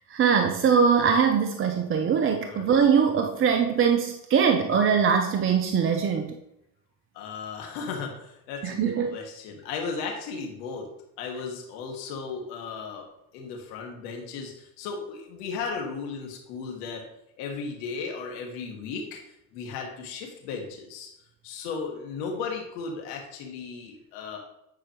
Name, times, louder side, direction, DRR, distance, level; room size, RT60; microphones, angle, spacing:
voice 1, 0.0-6.3 8.6-9.1, right 6 dB, 25° right, 5 dB, 0.6 m, -22 dB
voice 2, 7.1-10.9 11.2-13.1 13.3-17.0 17.4-21.1 21.4-24.4, left 5 dB, 65° left, 1 dB, 2.0 m, -35 dB
9.1 x 4.7 x 3.1 m, 0.80 s
hypercardioid pair, 75°, 49 cm